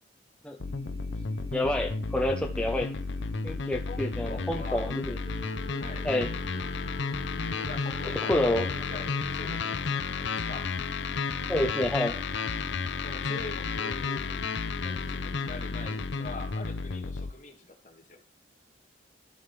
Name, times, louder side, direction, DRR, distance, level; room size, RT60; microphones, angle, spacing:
sound 1, 0.6-17.3, left 4 dB, 65° left, 0.6 m, -32 dB
sound 2, 0.6-16.5, left 1 dB, 60° right, 2.2 m, -48 dB
voice 1, 1.5-2.9 3.4-5.2 6.0-6.3 8.0-8.7 11.5-12.2, left 1 dB, 5° left, 1 dB, 0.7 m, -28 dB
voice 2, 3.9-4.9 5.4-6.1 7.5-10.7 13.0-14.4 14.8-18.2, left 3 dB, 40° left, 2 dB, 2.0 m, -44 dB
Wind instrument woodwind instrument, 5.2-9.6, right 1 dB, 40° right, 2.3 m, -46 dB
13.5 x 6.5 x 3.3 m, 0.42 s
head